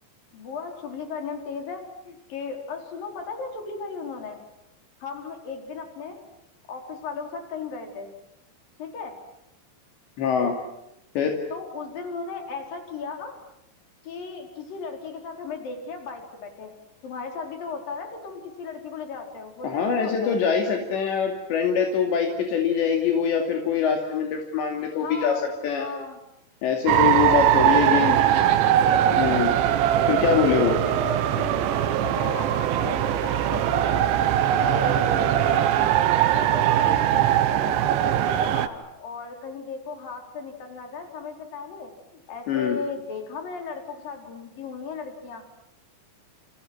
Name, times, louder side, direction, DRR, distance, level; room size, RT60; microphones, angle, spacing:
voice 1, 0.3-4.4 5.0-6.2 6.7-8.1 8.8-9.2 11.5-13.4 14.0-16.7 17.0-20.4 25.0-25.5 25.8-26.2 27.3-27.7 28.2-28.7 30.7-31.6 32.0-45.4, left 5 dB, 50° left, 3 dB, 6.0 m, -36 dB
voice 2, 10.2-10.6 11.2-11.4 19.6-25.9 26.6-28.2 29.1-29.5 30.1-30.8 42.5-42.8, left 7 dB, 70° left, 2 dB, 4.7 m, -24 dB
sound 1, 26.9-38.7, right 11 dB, 80° right, 3.7 m, -21 dB
30.0 x 29.5 x 6.2 m, 0.85 s
omnidirectional pair, 5.3 m